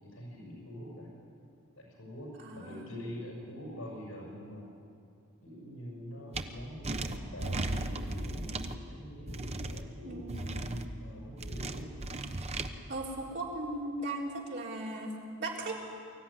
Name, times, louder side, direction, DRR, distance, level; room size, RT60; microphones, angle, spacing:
voice 1, 0.0-1.1 1.8-4.6 5.4-11.9, equal, 75° left, -1 dB, 6.0 m, -45 dB
voice 2, 2.4-2.9 10.0-10.5 12.9-15.8, right 2 dB, 55° right, -2 dB, 3.9 m, -37 dB
sound 1, 6.3-6.4 6.8-8.7 9.3-9.8 10.3-10.9 11.4-12.7, right 2 dB, 30° right, 1.0 m, -35 dB
23.5 x 14.5 x 9.9 m, 2.5 s
head